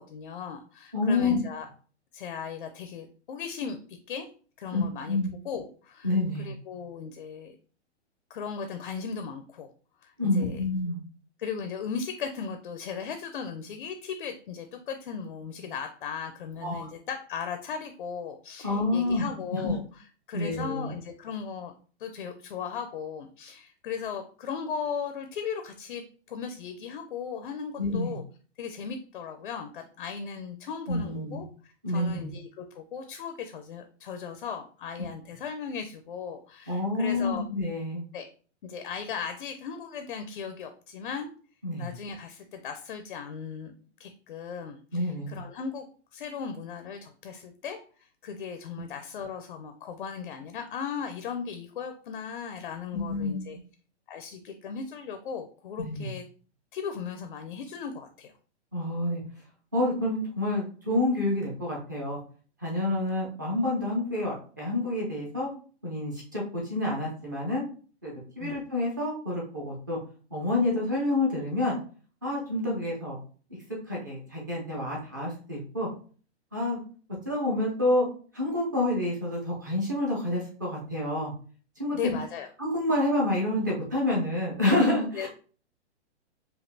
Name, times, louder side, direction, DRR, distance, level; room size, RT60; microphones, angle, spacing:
voice 1, 0.0-1.7 2.1-4.3 4.6-5.2 5.4-6.1 6.4-7.6 8.3-9.7 10.0-10.6 11.4-21.7 22.0-28.2 28.6-37.4 38.1-38.3 38.6-41.3 41.8-43.7 44.0-45.9 46.1-53.6 54.1-56.2 56.7-58.3 68.4-68.6 81.9-82.5 85.1-85.3, left 6 dB, 50° left, 7 dB, 0.4 m, -37 dB
voice 2, 0.9-1.4 4.7-5.3 6.0-6.5 10.2-11.0 16.6-16.9 18.6-19.7 20.3-20.9 27.8-28.2 30.9-31.4 31.8-32.3 36.7-38.0 41.6-41.9 44.9-45.4 52.9-53.5 55.8-56.1 58.7-59.2 59.7-62.2 62.6-65.5 65.8-67.6 68.0-70.0 70.3-71.7 72.2-73.2 73.9-75.9 76.5-76.8 77.3-78.1 78.3-81.3 81.8-82.2 82.6-85.3, left 2 dB, 15° right, -3 dB, 0.4 m, -28 dB
5.1 x 2.4 x 2.6 m, 0.41 s
hypercardioid pair, 170°, 35 cm